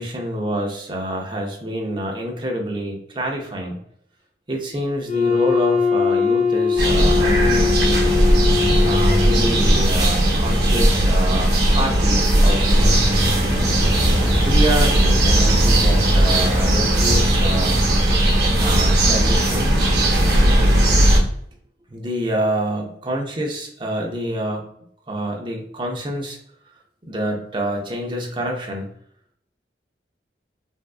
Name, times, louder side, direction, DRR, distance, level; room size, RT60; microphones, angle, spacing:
voice 1, 0.0-3.8 4.5-8.1 8.8-13.2 14.4-17.8 18.6-19.8 21.9-24.7 25.1-26.4 27.0-28.9, equal, 25° right, 1 dB, 0.5 m, -27 dB
Wind instrument woodwind instrument, 5.0-9.8, left 5 dB, 45° left, 0.5 m, -21 dB
sound 1, 6.8-21.2, right 1 dB, 60° right, 0.8 m, -17 dB
sound 2, 10.7-19.2, equal, 30° left, 1.0 m, -29 dB
3.5 x 2.4 x 2.3 m, 0.68 s
head